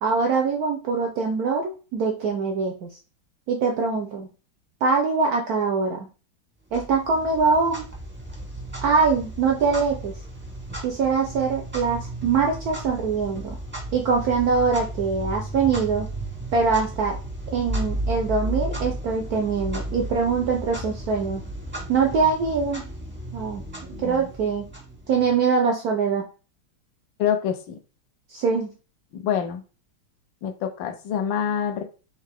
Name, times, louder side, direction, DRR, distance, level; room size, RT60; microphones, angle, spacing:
voice 1, 0.0-2.9 3.5-4.3 4.8-6.1 6.7-7.9 8.8-10.1 10.8-13.6 13.9-16.1 16.5-17.2 17.5-21.4 21.9-22.8 23.3-23.6 24.0-24.7 25.1-26.2 28.3-28.7, right 5 dB, 80° right, 2 dB, 0.8 m, -23 dB
Clock, 6.7-25.4, right 1 dB, 15° right, 0.5 m, -34 dB
voice 2, 24.0-24.3 27.2-27.8 29.1-29.6 30.4-31.8, left 8 dB, 75° left, 6 dB, 1.3 m, -26 dB
4.6 x 2.7 x 3.3 m, 0.35 s
omnidirectional pair, 2.3 m